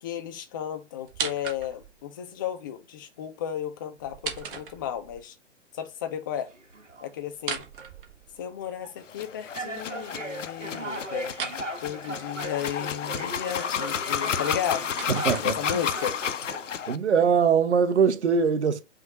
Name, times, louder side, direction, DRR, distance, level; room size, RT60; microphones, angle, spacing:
voice 1, 0.0-5.3 5.8-6.5 7.0-7.7 8.4-11.3 11.8-16.2, left 10 dB, 20° left, 0.4 m, -34 dB
sound 1, 1.0-2.0 4.0-5.2 7.3-8.7 11.3-11.6 14.4-16.0, right 6 dB, 45° right, 1.2 m, -37 dB
sound 2, 6.5-7.1 7.8-8.0 8.8-9.0 9.5-16.8, right 2 dB, 85° right, 1.1 m, -38 dB
sound 3, 9.1-17.0, left 8 dB, 80° left, 0.5 m, -32 dB
voice 2, 15.1-15.5 16.9-18.8, right 6 dB, 65° right, 0.9 m, -22 dB
5.7 x 2.5 x 3.0 m
figure-of-eight pair, 120°, 36 cm